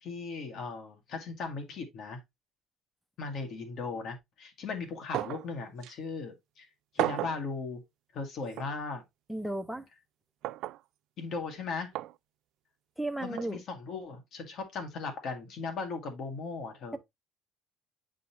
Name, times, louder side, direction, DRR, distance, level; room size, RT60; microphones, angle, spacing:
voice 1, 0.0-2.2 3.2-6.7 6.9-7.8 8.1-9.0 11.2-11.9 13.2-17.0, left 4 dB, 60° left, 2.0 m, -37 dB
sound 1, 5.1-5.5 5.8-5.9 7.0-7.4 8.6-8.7 10.4-10.8 11.9-12.1 13.4-13.5, right 15 dB, 75° right, 0.4 m, -33 dB
voice 2, 9.3-9.9 13.0-13.6, right 1 dB, ahead, 0.6 m, -34 dB
8.6 x 4.0 x 2.9 m
cardioid pair, 125°, 0 cm